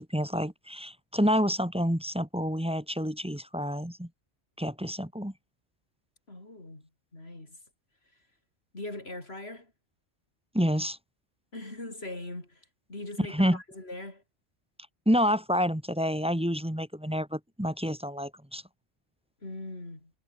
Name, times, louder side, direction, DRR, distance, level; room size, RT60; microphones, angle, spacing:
voice 1, 0.0-4.1 4.6-5.3 10.5-11.0 13.3-13.6 15.1-18.6, equal, 5° right, 1.3 m, -28 dB
voice 2, 6.3-7.6 8.7-9.7 11.5-14.2 19.4-20.1, left 2 dB, 60° left, 5.4 m, -41 dB
omnidirectional pair, 1.2 m